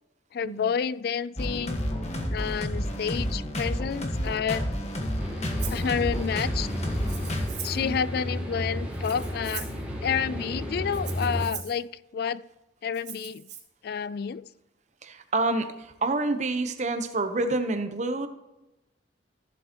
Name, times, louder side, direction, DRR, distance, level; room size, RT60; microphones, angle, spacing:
voice 1, 0.3-1.8 2.3-4.7 5.7-6.9 7.6-9.7 10.0-12.4 12.8-13.5 13.8-14.5, left 7 dB, 60° left, 0.3 m, -30 dB
sound 1, 1.4-7.5, equal, 40° left, 1.4 m, -30 dB
sound 2, 5.2-11.5, equal, 10° right, 2.6 m, -33 dB
Rattle (instrument), 5.6-5.9 7.0-7.9 8.9-9.8 10.9-11.8 12.9-13.6, right 9 dB, 65° right, 2.9 m, -40 dB
voice 2, 15.0-18.3, right 2 dB, 40° right, 0.9 m, -28 dB
15.0 x 7.7 x 3.0 m
head